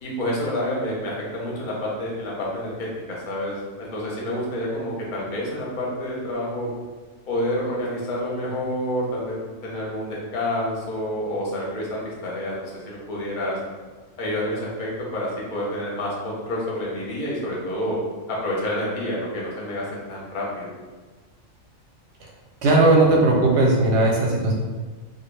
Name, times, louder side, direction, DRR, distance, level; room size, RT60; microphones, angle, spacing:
voice 1, 0.0-6.7 7.3-13.6 14.2-18.0 18.3-20.7, left 1 dB, 50° left, -5 dB, 0.7 m, -28 dB
voice 2, 22.6-24.5, right 2 dB, 65° right, -2 dB, 0.8 m, -17 dB
2.2 x 2.1 x 3.1 m, 1.3 s
omnidirectional pair, 1.4 m